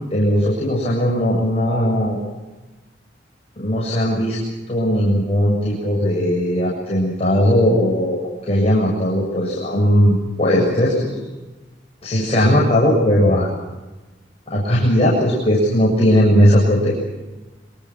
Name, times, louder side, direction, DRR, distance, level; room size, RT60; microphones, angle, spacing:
voice 1, 0.1-2.2 3.6-4.4 4.7-11.1 12.0-13.5 14.5-17.0, equal, 35° left, -5 dB, 7.5 m, -18 dB
26.5 x 25.5 x 6.2 m, 1.1 s
head